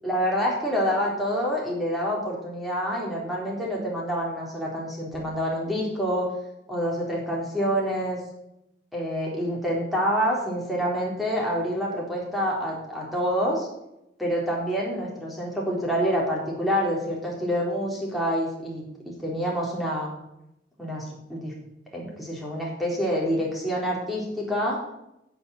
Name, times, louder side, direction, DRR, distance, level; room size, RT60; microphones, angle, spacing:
voice 1, 0.0-6.3 6.7-8.2 8.9-13.7 14.2-20.1 20.8-21.0 21.3-21.5 21.9-24.8, equal, ahead, -4 dB, 3.9 m, -27 dB
11.0 x 7.2 x 8.8 m, 0.84 s
head